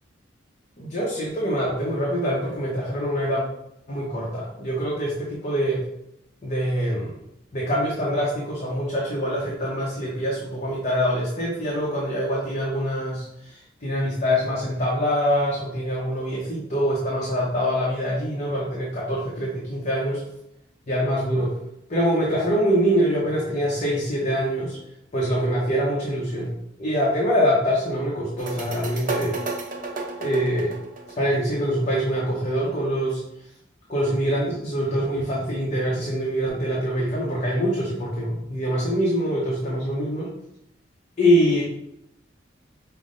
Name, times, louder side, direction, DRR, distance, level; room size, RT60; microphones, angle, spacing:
voice 1, 0.8-3.4 3.9-5.8 6.4-7.2 7.5-20.2 20.9-21.5 21.9-24.8 25.1-26.5 26.8-29.4 30.2-30.7 31.2-33.2 33.9-40.3 41.2-41.6, equal, 40° left, -4 dB, 0.8 m, -24 dB
sound 1, 28.4-31.8, right 3 dB, 45° right, 0.7 m, -32 dB
5.6 x 2.1 x 3.8 m, 0.81 s
head